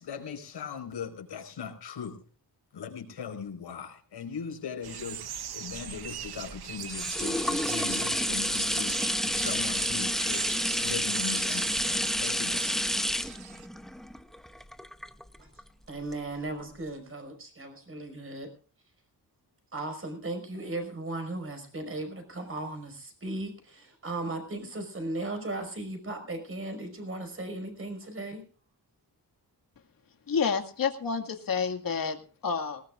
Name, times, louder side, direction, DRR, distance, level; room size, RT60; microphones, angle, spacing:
voice 1, 0.0-2.2 2.7-13.2, left 6 dB, 85° left, 4 dB, 4.9 m, -40 dB
sound 1, 4.8-13.7, right 9 dB, 65° right, 0.9 m, -40 dB
sound 2, 5.9-15.6 16.1-16.2, equal, ahead, 0.7 m, -30 dB
voice 2, 15.9-18.5 19.7-28.4, right 2 dB, 30° right, 6 dB, 5.3 m, -36 dB
voice 3, 30.3-32.2 32.4-32.8, left 6 dB, 55° left, 3 dB, 2.1 m, -29 dB
20.0 x 19.0 x 2.5 m, 0.40 s
wide cardioid pair, 125°, 41 cm